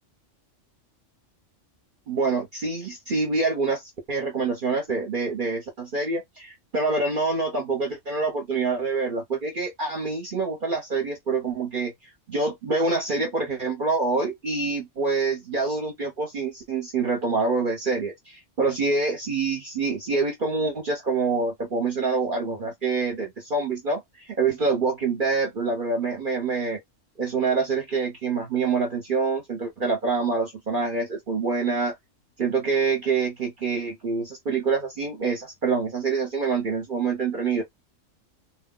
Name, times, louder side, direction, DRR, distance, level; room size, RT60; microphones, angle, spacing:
voice 1, 2.1-11.9 12.3-26.8 27.2-31.9 32.4-37.6, right 4 dB, 50° right, 0.8 m, -26 dB
2.3 x 2.1 x 3.6 m
omnidirectional pair, 1.3 m